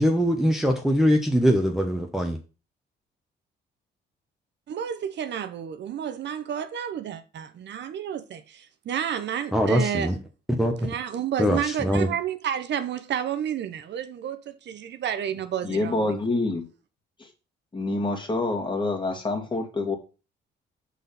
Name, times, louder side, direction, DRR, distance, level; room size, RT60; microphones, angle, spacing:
voice 1, 0.0-2.4 9.5-10.1 10.6-10.9 11.4-12.1, equal, ahead, 1.1 m, -22 dB
voice 2, 4.7-10.1 10.8-16.0, right 9 dB, 60° right, 0.7 m, -31 dB
voice 3, 15.6-16.7 17.2-17.3 17.7-20.0, left 2 dB, 25° left, 2.1 m, -27 dB
6.2 x 4.2 x 5.5 m
cardioid pair, 90°, 20 cm